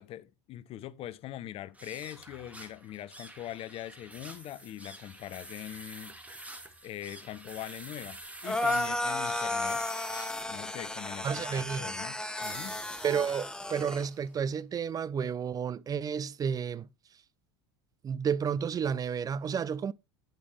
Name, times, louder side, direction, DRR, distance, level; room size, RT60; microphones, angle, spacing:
voice 1, 0.0-6.2 6.8-9.9 10.5-12.8, left 13 dB, 45° left, 0.8 m, -42 dB
sound 1, 1.7-14.2, right 1 dB, 10° right, 2.0 m, -48 dB
sound 2, 8.4-14.1, left 1 dB, 5° left, 1.0 m, -33 dB
voice 2, 11.2-11.9 13.0-16.9 18.0-19.9, right 7 dB, 25° right, 0.6 m, -31 dB
9.2 x 8.4 x 3.3 m
hypercardioid pair, 75°, 14 cm